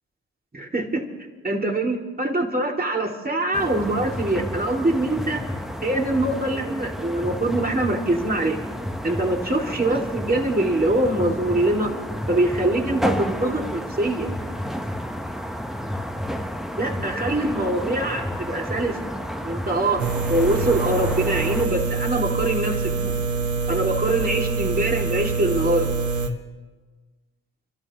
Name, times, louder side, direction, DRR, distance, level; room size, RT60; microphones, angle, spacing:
voice 1, 0.5-1.0 1.4-5.4 5.8-8.6 9.0-11.9 12.3-14.3 16.8-19.0 19.4-20.0 20.3-23.1 23.7-25.9, right 1 dB, 30° right, 1 dB, 2.5 m, -23 dB
sound 1, 3.5-21.7, equal, ahead, 1.1 m, -31 dB
sound 2, 20.0-26.3, right 4 dB, 80° right, 1.2 m, -25 dB
30.0 x 12.5 x 3.0 m, 1.3 s
cardioid pair, 50°, 29 cm